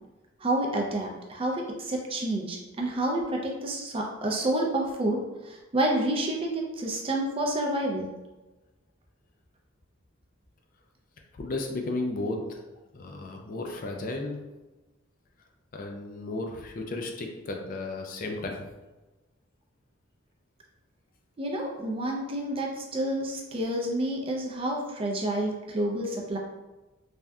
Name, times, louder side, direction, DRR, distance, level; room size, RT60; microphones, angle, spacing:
voice 1, 0.4-8.1 21.4-26.4, right 1 dB, 25° right, 0 dB, 0.4 m, -29 dB
voice 2, 11.3-12.6 12.9-14.4 15.7-18.7, left 2 dB, 40° left, 2 dB, 0.4 m, -34 dB
3.3 x 2.6 x 2.3 m, 1.1 s
head